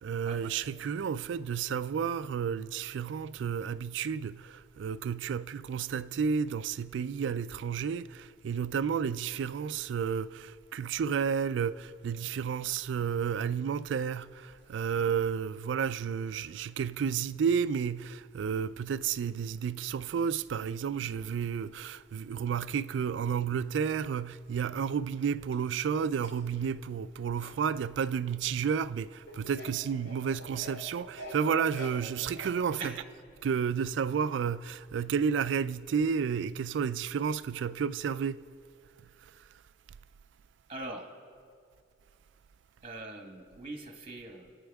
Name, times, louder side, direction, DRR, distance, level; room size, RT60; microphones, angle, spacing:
voice 1, 0.0-33.0 33.4-38.4, right 7 dB, 70° right, 0.3 m, -31 dB
sound 1, 13.9-15.3 15.9-16.0 17.9-18.0 19.1-19.2 19.9-20.1 23.3-23.4 24.3-24.4 24.8-24.9 25.3-28.0 28.5-28.6 29.3-32.8, equal, 70° left, 3.8 m, -48 dB
voice 2, 40.7-41.1 42.8-44.6, right 2 dB, 30° right, 1.3 m, -42 dB
28.0 x 9.5 x 3.5 m
head